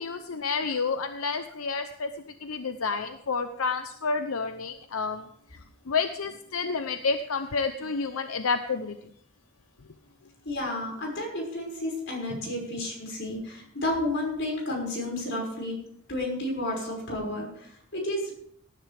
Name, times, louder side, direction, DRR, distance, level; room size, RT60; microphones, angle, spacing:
voice 1, 0.0-2.1 2.4-5.3 5.9-9.0, left 4 dB, 90° left, 8 dB, 0.8 m, -29 dB
voice 2, 10.4-15.8 16.1-18.3, left 1 dB, 60° left, 0 dB, 5.9 m, -31 dB
18.5 x 11.0 x 3.5 m, 0.69 s
head